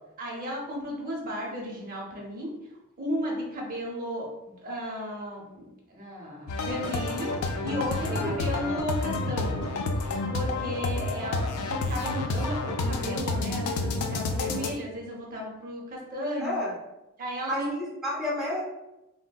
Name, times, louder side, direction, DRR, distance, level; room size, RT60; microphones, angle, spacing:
voice 1, 0.2-2.5 3.0-7.4 7.6-9.6 10.3-16.6 17.2-17.7, equal, 40° right, -2 dB, 0.7 m, -34 dB
sound 1, 6.5-14.7, left 2 dB, 80° left, 0.4 m, -29 dB
voice 2, 16.4-16.7 17.5-18.6, left 1 dB, ahead, -6 dB, 0.4 m, -30 dB
3.4 x 2.1 x 2.2 m, 0.94 s
head